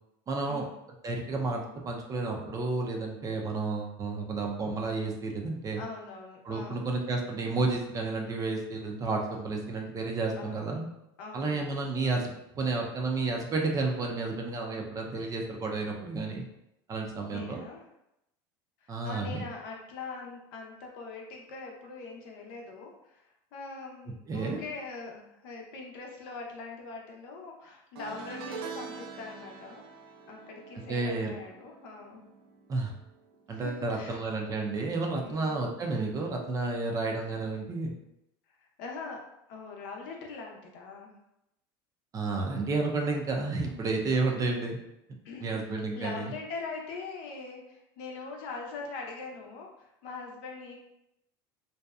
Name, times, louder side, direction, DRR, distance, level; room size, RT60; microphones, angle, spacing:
voice 1, 0.3-0.6 1.0-5.8 6.4-10.8 11.3-16.4 16.9-17.6 18.9-19.4 24.3-24.6 30.9-31.3 32.7-32.9 33.5-37.9 42.1-44.8 45.4-46.3, right 3 dB, 30° right, 1 dB, 0.4 m, -31 dB
voice 2, 5.8-6.9 10.3-10.7 11.2-11.7 17.3-17.8 18.8-29.9 30.3-32.2 33.5-34.2 35.2-35.6 38.6-39.2 39.5-41.1 45.2-45.5 45.9-50.8, left 4 dB, 70° left, 0 dB, 0.6 m, -42 dB
sound 1, 28.0-33.4 33.6-34.0 35.2-35.3, right 5 dB, 90° right, 0.4 m, -45 dB
2.7 x 2.2 x 2.3 m, 0.84 s
supercardioid pair, 110°, 12 cm